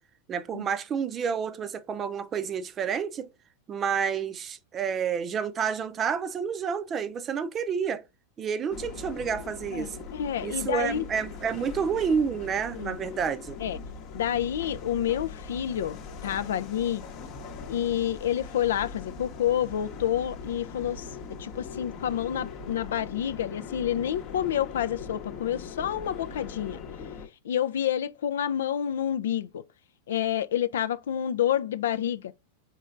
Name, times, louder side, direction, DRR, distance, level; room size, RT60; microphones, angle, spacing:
voice 1, 0.3-3.3 3.7-8.0 8.4-10.0 10.4-13.6, right 7 dB, 25° right, 0.5 m, -29 dB
sound 1, 8.7-27.3, left 5 dB, 45° left, 0.8 m, -41 dB
voice 2, 9.7-11.0 12.7-13.0 13.6-13.8 14.1-17.0 17.7-21.0 21.4-26.8 27.4-29.6 30.1-32.3, left 10 dB, 85° left, 0.3 m, -29 dB
4.4 x 3.2 x 2.4 m
hypercardioid pair, 125°, 0 cm